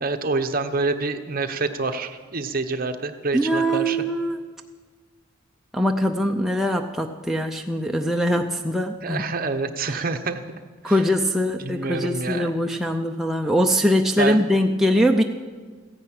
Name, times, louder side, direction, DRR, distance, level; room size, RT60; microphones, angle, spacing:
voice 1, 0.0-4.0 9.0-11.0 11.6-12.5 14.2-14.4, right 3 dB, 45° right, 8 dB, 0.9 m, -27 dB
voice 2, 3.3-4.4 5.7-9.2 10.8-15.2, equal, ahead, 2 dB, 0.5 m, -22 dB
15.0 x 10.5 x 8.7 m, 1.4 s
head